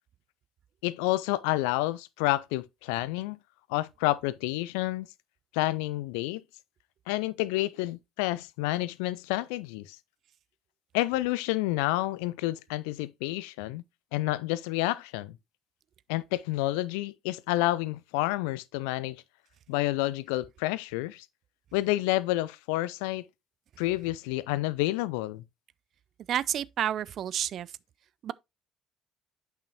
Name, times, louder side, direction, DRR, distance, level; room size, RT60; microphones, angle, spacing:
voice 1, 0.8-3.4 3.7-5.1 5.5-6.4 7.1-10.0 10.9-13.8 14.1-15.4 16.1-19.2 19.7-21.3 21.7-23.2 23.8-25.4, left 17 dB, 65° left, 0.4 m, -29 dB
voice 2, 26.3-27.7 28.2-28.3, right 10 dB, 50° right, 0.3 m, -30 dB
8.5 x 5.6 x 2.8 m
figure-of-eight pair, 55°, 0 cm